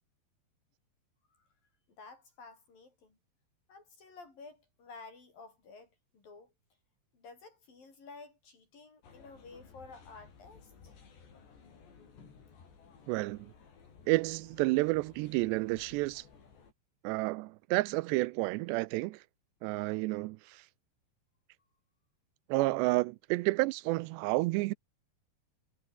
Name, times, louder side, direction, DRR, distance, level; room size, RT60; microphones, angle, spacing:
voice 1, 2.0-3.2 3.7-6.5 7.1-10.9, left 4 dB, 55° left, 9.1 m, -52 dB
sound 1, 9.0-16.7, left 6 dB, 80° left, 7.8 m, -57 dB
voice 2, 13.1-13.5 14.1-16.2 17.0-19.2 19.6-20.6 22.5-24.7, right 21 dB, 85° right, 2.8 m, -30 dB
omnidirectional pair, 4.9 m